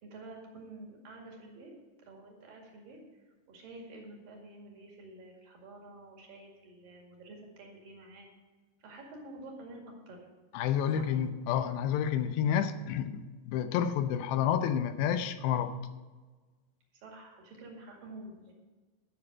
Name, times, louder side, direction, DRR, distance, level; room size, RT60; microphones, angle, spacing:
voice 1, 0.0-1.7 2.0-8.3 8.8-10.2 10.9-11.1 16.9-18.5, right 2 dB, 55° right, 0 dB, 3.6 m, -49 dB
voice 2, 10.5-15.7, left 9 dB, 85° left, 9 dB, 2.8 m, -29 dB
12.5 x 6.4 x 7.2 m, 1.3 s
omnidirectional pair, 4.9 m